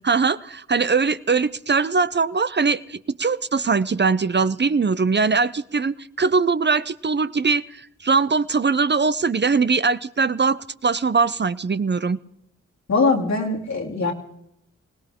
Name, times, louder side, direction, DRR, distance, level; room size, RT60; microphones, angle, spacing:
voice 1, 0.0-12.2, right 4 dB, 35° right, 14 dB, 0.7 m, -21 dB
voice 2, 12.9-14.1, left 3 dB, 65° left, 0 dB, 3.0 m, -21 dB
22.0 x 17.5 x 3.7 m, 0.81 s
cardioid pair, 45°, 29 cm